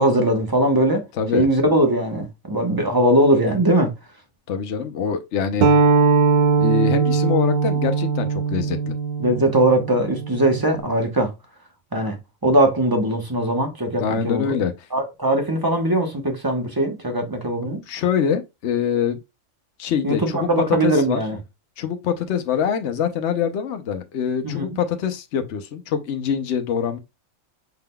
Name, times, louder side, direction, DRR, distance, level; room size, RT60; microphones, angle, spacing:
voice 1, 0.0-1.0 1.3-3.9 9.2-11.3 11.9-12.2 12.4-14.5 14.9-17.8 20.0-21.4 24.4-24.8, right 1 dB, 20° right, 1.0 m, -20 dB
voice 2, 1.2-1.5 4.5-5.7 6.6-8.9 14.0-14.7 17.6-19.2 19.8-20.4 20.8-21.2 21.8-27.0, left 7 dB, 65° left, 1.0 m, -24 dB
sound 1, 5.6-10.8, right 4 dB, 50° right, 0.7 m, -20 dB
5.8 x 3.7 x 2.2 m
omnidirectional pair, 1.4 m